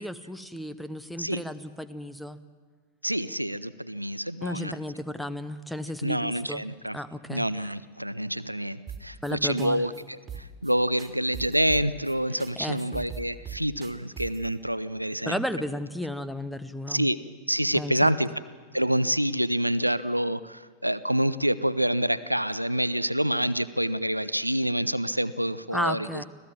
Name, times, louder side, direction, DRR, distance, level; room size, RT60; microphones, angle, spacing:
voice 1, 0.0-2.4 4.4-6.6 6.9-7.5 9.2-9.8 12.6-13.1 15.3-17.1 17.7-18.1 25.7-26.2, left 1 dB, ahead, 14 dB, 1.0 m, -33 dB
voice 2, 3.0-4.7 6.0-7.0 7.3-15.4 16.9-17.2 17.5-18.3 18.7-26.1, equal, 90° right, 15 dB, 0.6 m, -27 dB
sound 1, 8.9-9.3 9.6-9.7 9.9-10.0 10.3-10.7 11.0-12.1 12.4-12.5 12.8-14.5, right 7 dB, 20° right, 2.7 m, -39 dB
25.5 x 16.5 x 7.4 m, 1.5 s
figure-of-eight pair, 90°, 0 cm